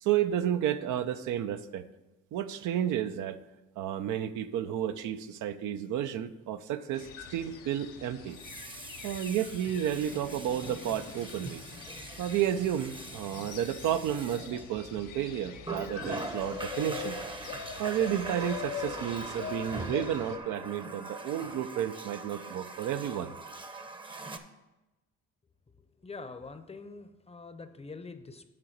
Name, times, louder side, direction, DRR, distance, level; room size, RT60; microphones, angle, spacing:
voice 1, 0.0-1.8 2.3-3.4 3.8-8.4 9.0-11.6 12.2-17.2 17.8-23.3, right 10 dB, 80° right, 10 dB, 0.5 m, -31 dB
Water tap faucet, 4.7-4.8 8.2-15.1 15.6-24.4, right 2 dB, 15° right, 0.7 m, -42 dB
sound 1, 6.9-20.4, left 8 dB, 90° left, 0.9 m, -43 dB
voice 2, 26.0-28.4, left 3 dB, 20° left, 9 dB, 0.6 m, -44 dB
8.9 x 3.9 x 6.5 m, 1.0 s
cardioid pair, 90°, 30 cm